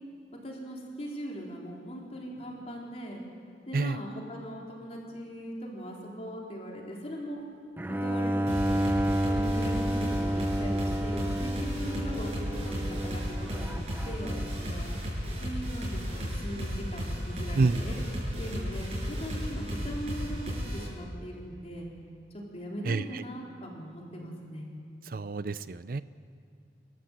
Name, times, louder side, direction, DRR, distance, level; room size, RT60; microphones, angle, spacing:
voice 1, 0.4-3.2 3.7-7.4 8.0-8.9 9.3-14.9 15.4-18.0 18.4-20.4 20.7-21.9 22.5-24.7, equal, 35° left, -2 dB, 4.2 m, -40 dB
Bowed string instrument, 7.8-14.8, right 1 dB, 10° right, 0.7 m, -30 dB
sound 1, 8.5-20.8, equal, 40° right, 7.6 m, -34 dB
voice 2, 22.9-23.2 25.1-26.0, right 3 dB, 55° right, 15 dB, 0.5 m, -28 dB
29.0 x 13.5 x 8.1 m, 2.4 s
head